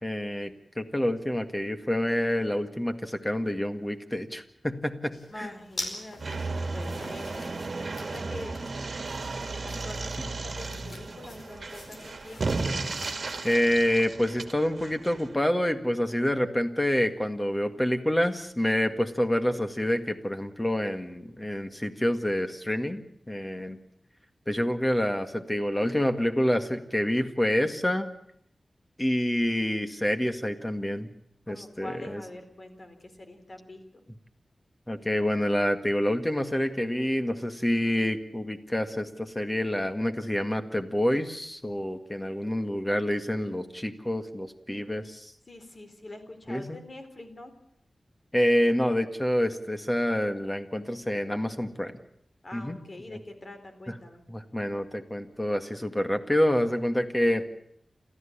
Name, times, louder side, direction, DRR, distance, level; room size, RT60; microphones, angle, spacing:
voice 1, 0.0-5.5 13.4-23.8 24.5-28.1 29.0-31.1 31.5-32.2 34.9-45.3 46.5-46.8 48.3-51.9 52.5-52.8 53.1-53.2 53.9-54.0 54.3-57.4, left 1 dB, 15° left, 8 dB, 1.9 m, -27 dB
sound 1, 5.1-13.6, left 2 dB, 70° left, 4.6 m, -44 dB
voice 2, 5.3-7.5 8.0-8.6 9.6-12.6 31.5-34.0 45.5-47.5 52.4-54.2, left 1 dB, 45° left, 7 dB, 3.7 m, -45 dB
sound 2, 6.2-15.4, right 3 dB, 60° right, 1.7 m, -34 dB
28.5 x 14.0 x 8.7 m, 0.74 s
wide cardioid pair, 85°, 0 cm